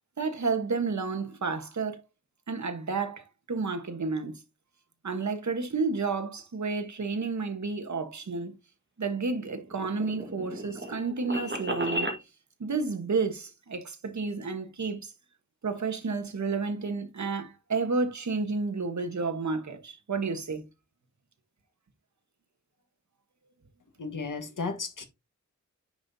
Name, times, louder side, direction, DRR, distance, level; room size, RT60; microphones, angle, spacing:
voice 1, 0.2-2.0 2.5-4.4 5.0-8.6 9.0-12.1 12.6-15.1 15.6-20.6, right 4 dB, 65° right, 1.3 m, -31 dB
sound 1, 9.2-12.2, right 1 dB, 35° right, 1.8 m, -34 dB
voice 2, 24.0-25.0, left 4 dB, 80° left, 1.6 m, -34 dB
9.6 x 5.5 x 2.7 m
wide cardioid pair, 90°, 31 cm